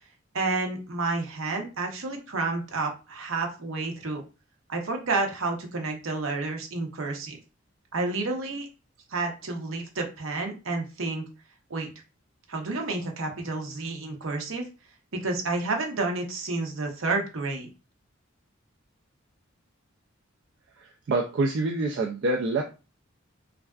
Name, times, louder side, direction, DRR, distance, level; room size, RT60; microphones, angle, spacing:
voice 1, 0.3-4.2 4.7-7.4 7.9-8.7 9.1-11.2 11.7-11.9 12.5-14.6 15.1-17.7, right 3 dB, 75° right, 3 dB, 0.7 m, -30 dB
voice 2, 20.8-22.6, right 2 dB, 60° right, 2 dB, 0.3 m, -26 dB
3.3 x 2.4 x 2.3 m, 0.31 s
head